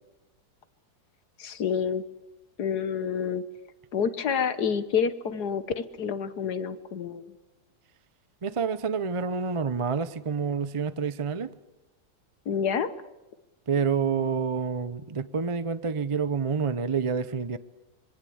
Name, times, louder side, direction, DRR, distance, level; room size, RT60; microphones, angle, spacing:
voice 1, 1.4-2.0 2.6-3.4 3.9-7.3 12.5-12.9, left 7 dB, 60° left, 1.7 m, -28 dB
voice 2, 8.4-11.5 13.7-17.6, right 5 dB, 35° right, 0.5 m, -28 dB
25.5 x 23.0 x 7.9 m
omnidirectional pair, 2.0 m